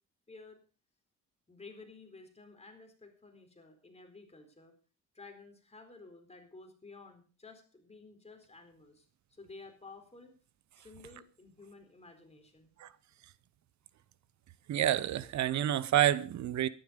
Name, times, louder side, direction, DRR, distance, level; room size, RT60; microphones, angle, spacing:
voice 1, 0.3-0.6 1.5-4.7 5.1-10.4 10.7-12.7, left 3 dB, 20° left, 4.3 m, -53 dB
voice 2, 14.7-16.7, right 11 dB, 70° right, 0.9 m, -28 dB
13.0 x 11.5 x 5.2 m
cardioid pair, 90°, 30 cm